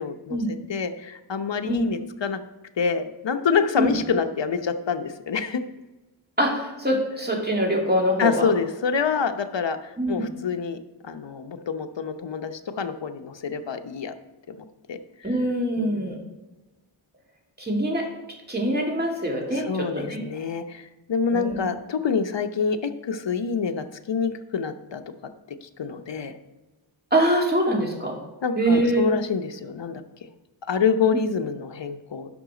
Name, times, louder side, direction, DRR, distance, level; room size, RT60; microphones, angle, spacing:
voice 1, 0.0-0.4 0.7-2.4 2.8-5.6 8.2-10.8 11.0-14.1 14.5-14.6 14.9-15.3 15.8-16.2 19.5-25.0 25.6-26.4 28.4-30.3 30.7-32.3, left 5 dB, 60° left, 7 dB, 0.9 m, -27 dB
voice 2, 6.4-8.5 10.0-10.3 15.2-16.2 17.6-18.0 18.5-20.2 21.3-21.6 27.1-28.2 28.6-29.0, right 1 dB, 20° right, -1 dB, 2.5 m, -24 dB
11.0 x 5.7 x 5.0 m, 1.1 s
wide cardioid pair, 75°, 49 cm